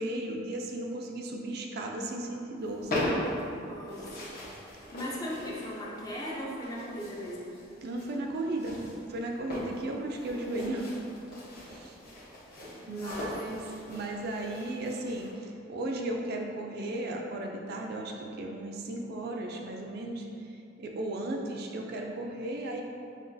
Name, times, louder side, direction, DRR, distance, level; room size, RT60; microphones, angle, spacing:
voice 1, 0.0-3.3 7.8-8.8 9.1-11.0 11.6-12.0 12.9-22.8, right 1 dB, 50° right, 1 dB, 0.3 m, -35 dB
sound 1, 2.6-15.3, left 1 dB, 50° left, 1.0 m, -39 dB
voice 2, 3.7-4.4 4.9-7.5 12.8-13.7, equal, 20° left, -5 dB, 0.5 m, -38 dB
5.8 x 2.3 x 2.6 m, 2.6 s
head